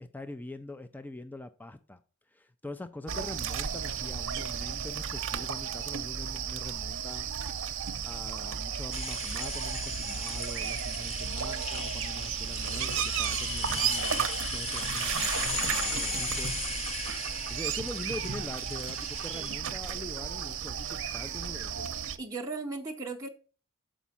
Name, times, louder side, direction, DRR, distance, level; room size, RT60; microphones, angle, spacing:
voice 1, 0.0-2.0 2.3-7.3 8.0-16.5 17.5-21.9, left 2 dB, 10° left, 0.3 m, -43 dB
sound 1, 3.1-22.2, right 8 dB, 60° right, 0.7 m, -34 dB
sound 2, 8.9-19.6, left 3 dB, 30° left, 0.8 m, -37 dB
voice 2, 22.2-23.3, right 3 dB, 15° right, 0.7 m, -37 dB
7.2 x 5.0 x 5.5 m
head